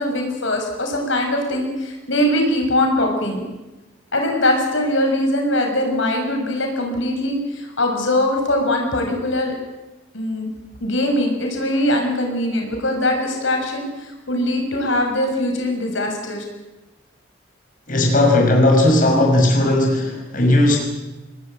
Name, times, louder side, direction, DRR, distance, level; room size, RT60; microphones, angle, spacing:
voice 1, 0.0-3.4 4.1-9.5 10.1-10.5 10.8-16.4, left 1 dB, 75° left, 3 dB, 6.6 m, -21 dB
voice 2, 17.9-20.8, left 1 dB, 45° left, 1 dB, 6.0 m, -16 dB
27.0 x 19.5 x 9.1 m, 1.1 s
head